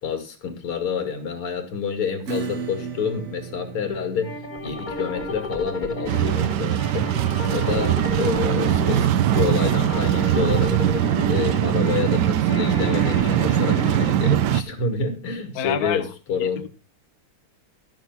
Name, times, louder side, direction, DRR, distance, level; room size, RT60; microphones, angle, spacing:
voice 1, 0.0-4.4 4.6-7.1 7.5-10.8 11.3-16.7, left 6 dB, 80° left, 3.1 m, -28 dB
Acoustic guitar / Strum, 2.3-9.5, right 6 dB, 45° right, 1.1 m, -38 dB
sound 1, 4.2-14.1, left 2 dB, 25° left, 1.7 m, -32 dB
sound 2, 6.1-14.6, right 11 dB, 65° right, 1.1 m, -21 dB
voice 2, 15.5-16.0 16.4-16.7, left 9 dB, 55° left, 1.2 m, -28 dB
13.0 x 6.2 x 6.0 m
omnidirectional pair, 2.4 m